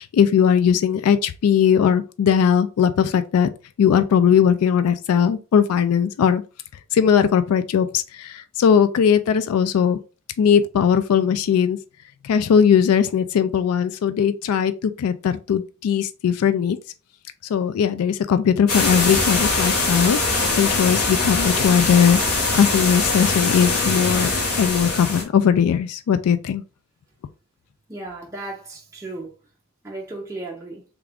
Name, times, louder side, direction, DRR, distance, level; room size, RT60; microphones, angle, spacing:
voice 1, 0.0-3.5 3.8-6.4 6.9-10.0 10.4-11.8 12.2-16.8 17.5-22.2 22.5-24.3 24.6-26.6, left 7 dB, 70° left, 0.3 m, -19 dB
sound 1, 18.7-25.2, left 3 dB, 90° left, 1.3 m, -22 dB
voice 2, 27.9-29.3 29.8-30.8, right 2 dB, 15° right, 0.7 m, -35 dB
3.5 x 2.4 x 3.4 m
head